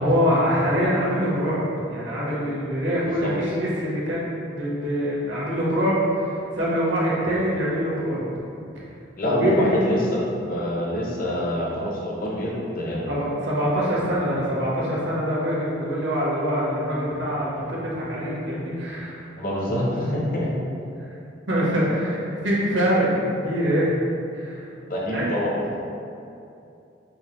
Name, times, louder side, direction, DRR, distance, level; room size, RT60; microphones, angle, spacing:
voice 1, 0.0-1.6 1.9-8.2 9.2-9.9 13.1-19.3 19.7-19.8 21.5-24.0 24.3-24.7 25.1-25.3, equal, 80° right, -7 dB, 1.1 m, -24 dB
voice 2, 3.0-3.3 9.2-10.2 10.5-13.0 19.4-20.5 24.9-25.6, left 1 dB, 45° left, -4 dB, 0.7 m, -25 dB
5.5 x 2.5 x 3.0 m, 2.7 s
head